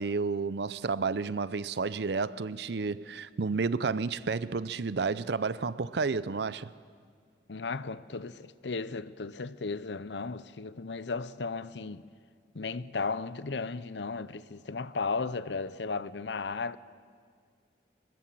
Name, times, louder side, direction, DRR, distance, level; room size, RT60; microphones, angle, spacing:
voice 1, 0.0-6.7, right 4 dB, 75° right, 0.6 m, -31 dB
voice 2, 7.5-12.0 12.5-16.8, left 4 dB, 90° left, 0.7 m, -35 dB
24.5 x 20.0 x 7.7 m
head